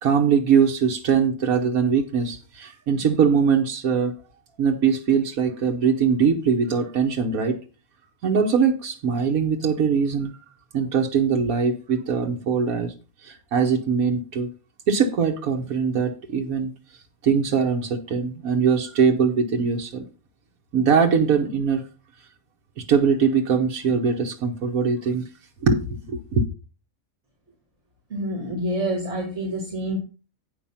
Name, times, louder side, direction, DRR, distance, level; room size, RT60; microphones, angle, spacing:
voice 1, 0.0-4.1 4.6-7.6 8.2-10.4 10.7-12.9 13.2-14.5 14.9-16.7 17.2-20.0 20.7-21.8 22.8-25.2 25.6-26.4, right 6 dB, 85° right, 1.5 m, -22 dB
voice 2, 28.1-30.0, right 1 dB, 55° right, 2.3 m, -27 dB
8.9 x 5.5 x 5.6 m
omnidirectional pair, 1.4 m